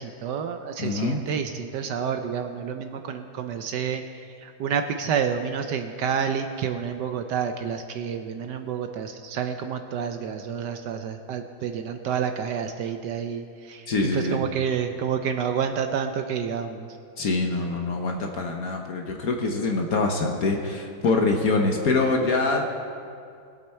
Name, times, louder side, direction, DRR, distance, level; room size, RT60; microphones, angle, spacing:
voice 1, 0.0-4.0 4.4-13.9 14.1-16.9, right 7 dB, 70° right, 7 dB, 1.0 m, -29 dB
voice 2, 0.8-1.3 13.9-14.4 17.2-22.7, left 3 dB, 55° left, 2 dB, 1.2 m, -24 dB
20.0 x 8.1 x 4.4 m, 2.4 s
omnidirectional pair, 2.3 m